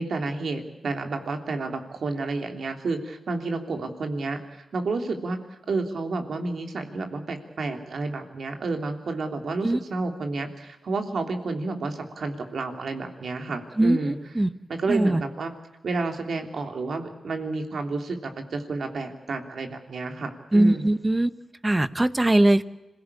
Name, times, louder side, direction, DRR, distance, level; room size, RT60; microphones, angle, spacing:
voice 1, 0.0-5.4 5.7-14.2 14.7-15.5 15.8-20.8, right 3 dB, 75° right, 5 dB, 3.2 m, -30 dB
voice 2, 13.8-14.5 14.9-15.2 20.5-21.3 21.6-22.6, right 1 dB, 20° right, 14 dB, 1.0 m, -21 dB
26.5 x 17.0 x 8.5 m, 1.0 s
cardioid pair, 70°, 0 cm